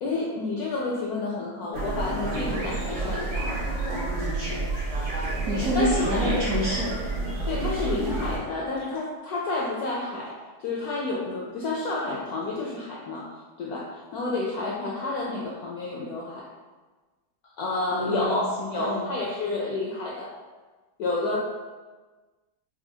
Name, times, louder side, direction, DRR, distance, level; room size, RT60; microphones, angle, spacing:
voice 1, 0.0-3.6 5.7-6.4 7.5-10.4 10.6-13.3 13.6-16.5 17.6-20.3 21.0-21.4, left 2 dB, 75° left, -3 dB, 0.8 m, -30 dB
sound 1, 1.7-8.4, right 2 dB, 85° right, 1.6 m, -29 dB
voice 2, 4.2-4.8 5.4-6.9 17.9-19.1, equal, 65° right, -6 dB, 0.8 m, -28 dB
5.5 x 2.4 x 2.7 m, 1.3 s
omnidirectional pair, 2.1 m